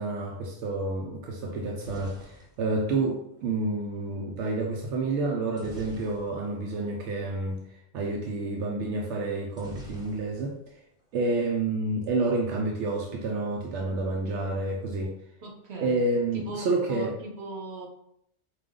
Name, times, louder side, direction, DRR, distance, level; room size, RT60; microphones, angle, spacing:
voice 1, 0.0-10.6 11.1-15.1 15.8-17.1, right 2 dB, 85° right, 0 dB, 0.9 m, -29 dB
sound 1, 1.5-3.6 5.5-6.7 7.0-7.1 7.4-7.6 9.5-10.7 11.0-11.6, equal, 5° right, 0.7 m, -47 dB
voice 2, 15.4-16.0 16.3-17.9, right 2 dB, 65° right, -1 dB, 1.2 m, -38 dB
4.8 x 2.2 x 3.7 m, 0.74 s
omnidirectional pair, 1.2 m